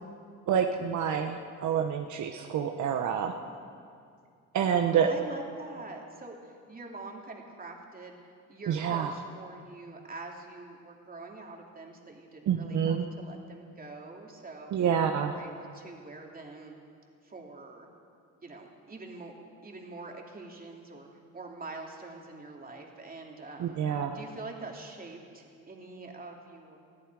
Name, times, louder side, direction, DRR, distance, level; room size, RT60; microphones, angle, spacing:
voice 1, 0.5-3.3 4.5-5.1 8.7-9.1 12.5-13.0 14.7-15.3 23.6-24.2, right 8 dB, 70° right, 4 dB, 1.0 m, -27 dB
voice 2, 5.1-8.2 8.5-14.7 15.1-16.8 17.2-17.9 18.4-19.3 19.6-21.1 21.3-23.8 24.1-26.8, right 3 dB, 30° right, 0 dB, 2.8 m, -45 dB
21.0 x 14.5 x 4.8 m, 2.3 s
cardioid pair, 90°, 30 cm